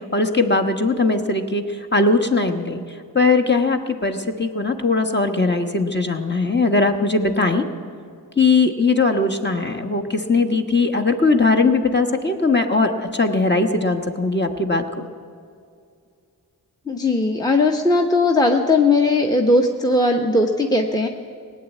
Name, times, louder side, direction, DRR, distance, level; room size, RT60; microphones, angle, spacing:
voice 1, 0.1-1.6 1.9-2.8 3.1-7.6 8.4-15.1, left 3 dB, 25° left, 3 dB, 1.3 m, -19 dB
voice 2, 16.9-21.1, left 2 dB, 10° left, 3 dB, 1.0 m, -18 dB
18.0 x 9.2 x 8.3 m, 2.3 s
cardioid pair, 45°, 40 cm